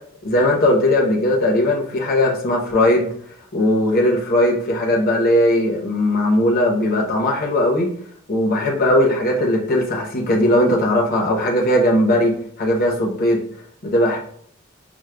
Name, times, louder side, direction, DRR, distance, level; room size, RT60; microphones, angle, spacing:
voice 1, 0.2-3.1 3.5-7.9 8.3-13.4 13.8-14.2, left 1 dB, 45° left, 0 dB, 0.8 m, -18 dB
6.0 x 2.1 x 2.2 m, 0.62 s
head